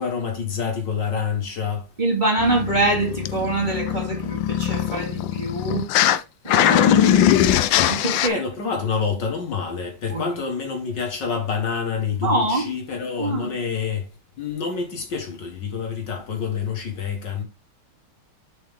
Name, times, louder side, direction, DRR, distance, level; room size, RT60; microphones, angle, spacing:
voice 1, 0.0-1.8 8.2-14.1 14.4-17.4, left 6 dB, 55° left, 1.8 m, -27 dB
voice 2, 2.0-5.9 6.4-8.4 10.1-10.4 12.2-12.7 13.2-13.5, right 2 dB, 20° right, 2.1 m, -25 dB
sound 1, 2.4-6.2 6.5-8.3, left 11 dB, 75° left, 1.2 m, -21 dB
6.9 x 5.5 x 3.4 m
omnidirectional pair, 2.4 m